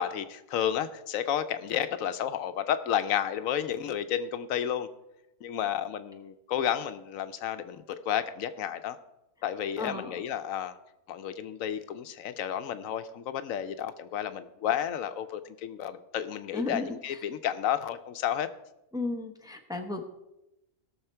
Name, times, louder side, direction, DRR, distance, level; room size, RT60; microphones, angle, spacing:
voice 1, 0.0-4.9 5.4-9.0 9.4-10.8 11.1-18.5, left 9 dB, 85° left, 11 dB, 1.1 m, -31 dB
voice 2, 9.8-10.1 16.5-17.0 18.9-20.0, left 2 dB, 5° right, 4 dB, 0.9 m, -34 dB
17.0 x 6.6 x 4.4 m, 0.92 s
omnidirectional pair, 1.4 m